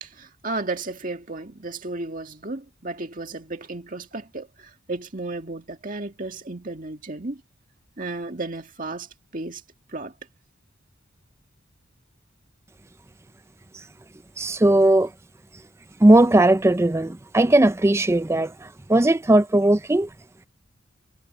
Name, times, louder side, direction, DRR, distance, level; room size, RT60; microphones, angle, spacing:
voice 1, 0.0-7.4 8.0-9.6 9.9-10.1, right 2 dB, 40° right, 2.1 m, -33 dB
voice 2, 14.4-15.1 16.0-20.1, right 1 dB, 15° right, 0.4 m, -18 dB
head